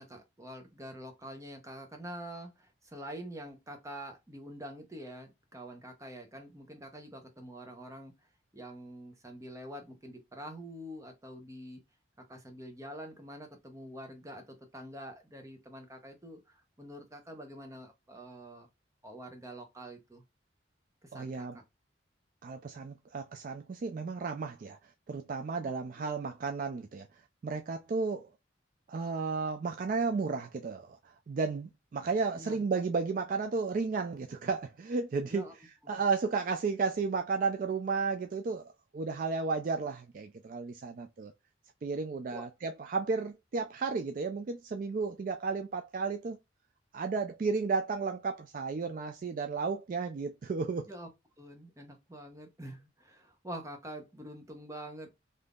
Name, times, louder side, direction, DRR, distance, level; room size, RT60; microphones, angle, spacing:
voice 1, 0.0-8.1 8.5-11.8 12.2-18.7 19.0-20.2 21.0-21.6 25.6-25.7 26.0-26.1 32.3-32.6 35.3-35.5 42.3-42.4 50.9-51.1 51.4-55.1, right 1 dB, 15° right, 0.7 m, -46 dB
voice 2, 21.1-21.6 22.4-27.1 27.4-28.3 28.9-31.0 31.3-35.5 35.9-41.3 41.8-46.4 46.9-50.9, right 4 dB, 45° right, 0.3 m, -33 dB
3.5 x 2.6 x 2.3 m
head